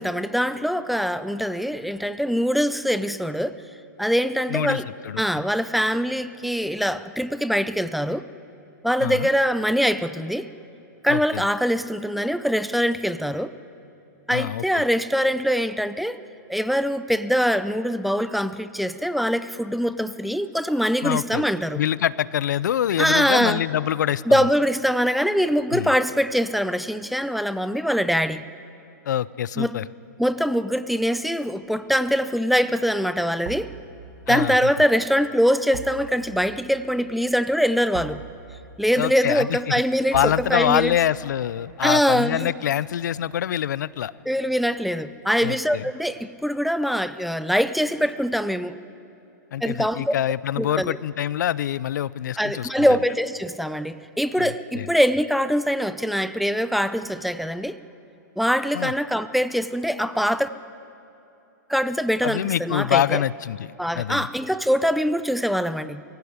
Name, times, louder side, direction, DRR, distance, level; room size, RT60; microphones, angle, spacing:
voice 1, 0.0-3.6 4.0-4.9 5.2-8.3 8.8-10.5 11.0-13.5 14.3-16.2 16.5-21.8 23.0-23.6 24.3-28.4 29.6-29.7 30.2-33.7 34.3-38.2 38.8-41.0 41.8-42.5 44.3-48.8 49.6-50.1 50.6-51.0 52.4-57.8 58.4-60.5 61.7-63.2 63.8-66.0, equal, ahead, 12 dB, 0.6 m, -23 dB
voice 2, 4.5-5.4 9.0-9.3 11.1-11.4 14.3-14.8 21.0-21.4 21.7-24.4 25.7-25.9 29.1-29.9 34.3-34.7 39.0-39.6 40.1-44.1 45.4-45.9 49.5-53.0 54.4-54.9 58.7-58.9 62.2-64.3, left 10 dB, 75° left, 20 dB, 0.6 m, -25 dB
sound 1, 31.7-32.0 33.4-44.4 44.8-44.9, right 9 dB, 50° right, 1.6 m, -43 dB
23.5 x 16.5 x 9.6 m, 2.8 s
hypercardioid pair, 135°, 10 cm